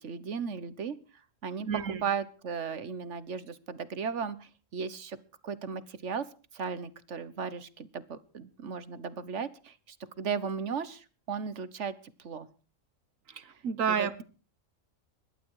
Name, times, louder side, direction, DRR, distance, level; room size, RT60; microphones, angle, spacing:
voice 1, 0.0-1.0 1.4-1.7 2.0-5.2 5.4-6.3 6.5-12.5 13.9-14.2, right 6 dB, 65° right, 15 dB, 1.4 m, -36 dB
voice 2, 1.7-2.0 13.3-14.2, right 7 dB, 80° right, 14 dB, 1.6 m, -30 dB
22.5 x 12.0 x 4.8 m, 0.38 s
omnidirectional pair, 1.3 m